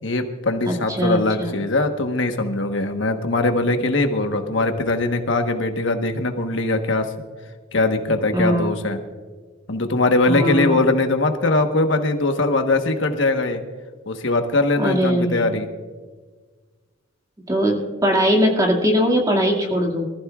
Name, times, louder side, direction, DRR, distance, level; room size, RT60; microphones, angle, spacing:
voice 1, 0.0-7.1 7.7-9.0 9.7-13.6 14.1-15.7, left 2 dB, 75° left, 5 dB, 1.2 m, -21 dB
voice 2, 0.7-1.6 8.3-8.8 10.3-10.8 14.8-15.6 17.5-20.1, equal, 20° right, 1 dB, 2.1 m, -20 dB
24.0 x 14.5 x 2.4 m, 1.4 s
head